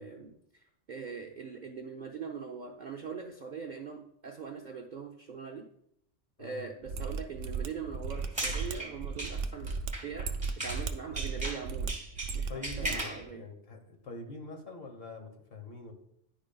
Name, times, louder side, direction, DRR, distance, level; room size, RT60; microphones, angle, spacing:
voice 1, 0.0-5.7 6.4-9.7 10.0-10.3 10.6-12.0 12.3-13.4, right 5 dB, 50° right, 2 dB, 0.6 m, -42 dB
Mechanisms, 6.8-13.0 13.2-13.3, right 5 dB, 85° right, 1.0 m, -36 dB
sound 1, 8.1-10.9 11.2-13.2, right 1 dB, 5° right, 1.2 m, -38 dB
voice 2, 12.5-15.9, left 2 dB, 55° left, 3 dB, 1.2 m, -44 dB
10.0 x 5.0 x 2.2 m, 0.72 s
omnidirectional pair, 1.3 m